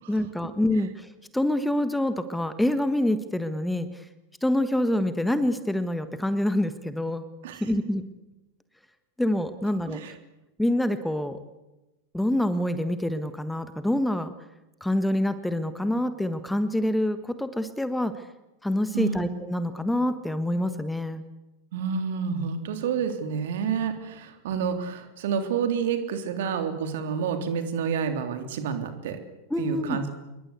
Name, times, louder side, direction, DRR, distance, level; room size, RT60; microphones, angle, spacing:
voice 1, 0.1-3.9 4.4-7.2 7.6-8.0 9.2-10.1 10.6-11.4 12.1-14.3 14.8-18.1 18.6-21.2 29.5-30.0, left 1 dB, 5° left, 12 dB, 1.4 m, -26 dB
voice 2, 18.9-19.2 21.7-29.2 29.6-30.1, right 6 dB, 55° right, 7 dB, 3.5 m, -29 dB
27.0 x 22.5 x 8.3 m, 1.0 s
figure-of-eight pair, 90°, 0 cm